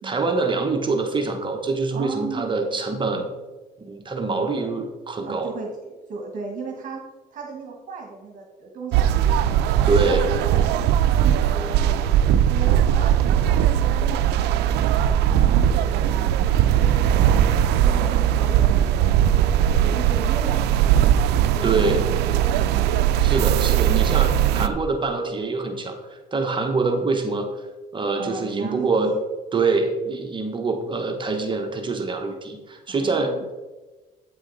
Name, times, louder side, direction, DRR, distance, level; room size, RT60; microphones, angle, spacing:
voice 1, 0.0-3.3 3.9-5.5 9.9-10.3 21.6-22.0 23.2-27.5 27.9-29.1 29.5-33.3, right 3 dB, 30° right, 4 dB, 0.9 m, -25 dB
voice 2, 1.9-2.6 4.3-4.7 5.2-7.0 7.3-9.6 9.9-12.1 12.4-16.3 16.7-17.4 17.7-22.9 24.5-24.8 28.2-29.2 32.9-33.4, right 4 dB, 50° right, 1 dB, 1.2 m, -36 dB
sound 1, 8.9-24.7, right 10 dB, 85° right, 0.4 m, -19 dB
8.5 x 5.0 x 3.9 m, 1.2 s
cardioid pair, 110°, 17 cm